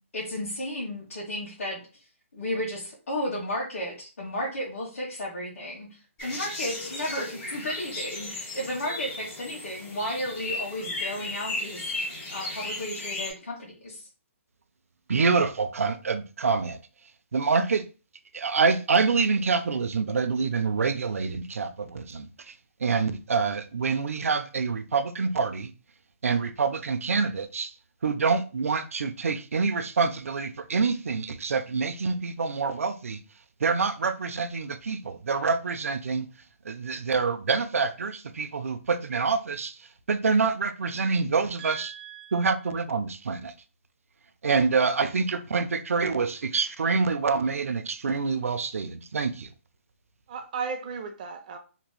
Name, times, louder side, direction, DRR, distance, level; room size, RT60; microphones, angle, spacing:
voice 1, 0.1-1.8 2.3-5.9 6.2-14.1, left 1 dB, 75° left, 1.2 m, -33 dB
sound 1, 6.2-13.3, left 2 dB, 20° left, 1.1 m, -35 dB
voice 2, 15.1-16.8 17.3-17.9 18.3-22.5 22.8-25.7 26.2-27.7 28.0-33.2 33.6-36.3 36.6-41.9 42.3-43.5 44.4-49.5, right 4 dB, 90° right, 0.4 m, -26 dB
voice 3, 41.6-42.3 50.3-51.6, right 6 dB, 35° right, 0.5 m, -35 dB
3.0 x 2.9 x 2.2 m
hypercardioid pair, 155°, 7 cm